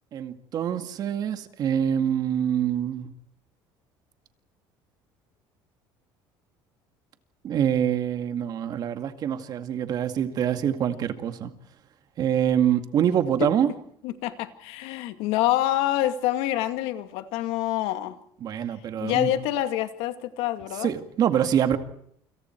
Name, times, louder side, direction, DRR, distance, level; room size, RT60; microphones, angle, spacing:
voice 1, 0.1-3.1 7.4-11.5 12.2-13.7 18.4-19.3 20.8-21.8, right 9 dB, 45° right, 2.2 m, -25 dB
voice 2, 14.0-18.2 19.0-20.9, left 13 dB, 85° left, 2.3 m, -26 dB
28.5 x 26.5 x 4.7 m
cardioid pair, 155°, 10 cm